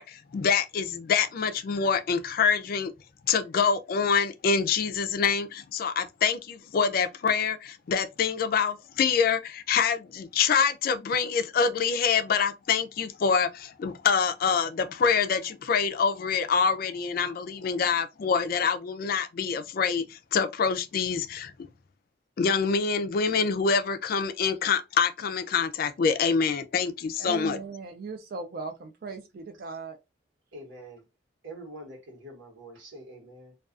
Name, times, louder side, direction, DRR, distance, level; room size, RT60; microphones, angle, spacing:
voice 1, 0.0-2.9 3.3-21.5 22.4-27.6, left 6 dB, 50° left, 0.3 m, -26 dB
voice 2, 27.2-30.0, right 4 dB, 50° right, 0.4 m, -38 dB
voice 3, 30.5-31.0 31.4-33.5, right 1 dB, 85° right, 1.1 m, -45 dB
2.3 x 2.3 x 2.4 m
head